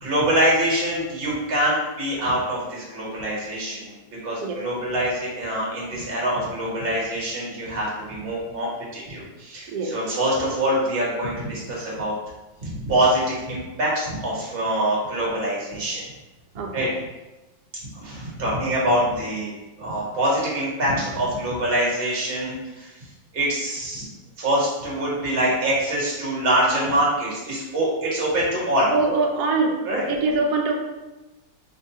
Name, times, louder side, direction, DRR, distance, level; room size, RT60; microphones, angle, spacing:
voice 1, 0.0-12.1 12.6-16.0 16.7-16.9 17.9-19.5 19.8-22.9 23.3-24.1 24.4-28.9 29.8-30.0, right 1 dB, 35° right, -5 dB, 1.3 m, -24 dB
voice 2, 16.6-16.9 28.9-29.7 30.1-30.7, right 3 dB, 70° right, 1 dB, 1.0 m, -23 dB
3.2 x 2.7 x 4.5 m, 1.1 s
omnidirectional pair, 2.1 m